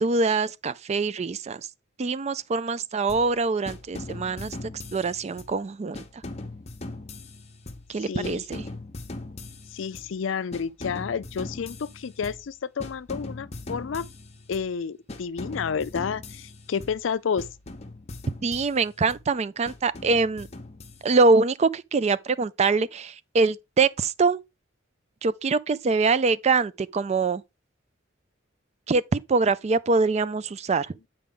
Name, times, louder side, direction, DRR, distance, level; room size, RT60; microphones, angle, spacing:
voice 1, 0.0-1.6 2.0-6.0 7.9-8.7 18.4-20.5 21.0-24.4 25.2-27.4 28.9-30.9, right 4 dB, 35° right, 0.4 m, -24 dB
sound 1, 3.1-3.4 3.7-5.6 5.9-8.0 8.2-10.2 10.5-12.5 12.8-14.7 15.1-17.1 17.4-19.3 19.7-21.3, left 2 dB, 35° left, 0.8 m, -40 dB
voice 2, 8.0-8.4 9.7-14.0 14.5-17.5, left 6 dB, 70° left, 0.4 m, -30 dB
8.3 x 5.1 x 3.6 m
head